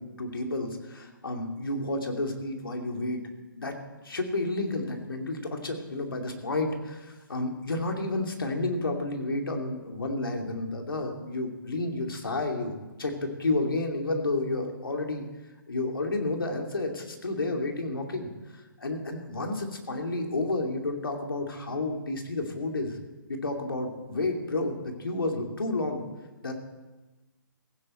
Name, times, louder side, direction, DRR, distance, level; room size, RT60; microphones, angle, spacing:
voice 1, 0.0-3.2 3.5-3.8 4.0-15.3 15.7-23.0 23.3-26.0 26.4-26.5, left 2 dB, 80° left, 3 dB, 2.7 m, -31 dB
16.5 x 15.5 x 4.4 m, 1.1 s
hypercardioid pair, 140°, 12 cm